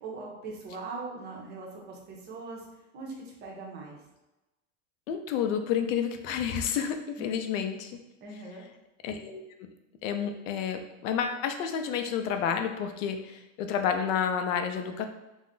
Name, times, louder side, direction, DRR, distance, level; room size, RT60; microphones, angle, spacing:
voice 1, 0.0-2.6 2.9-3.1 3.4-4.0 7.2-7.5 8.2-8.6, right 3 dB, 25° right, -2 dB, 0.5 m, -40 dB
voice 2, 5.1-8.0 9.0-9.7 10.0-15.0, left 7 dB, 75° left, 7 dB, 0.5 m, -30 dB
2.3 x 2.0 x 3.6 m, 1.0 s
supercardioid pair, 150°, 39 cm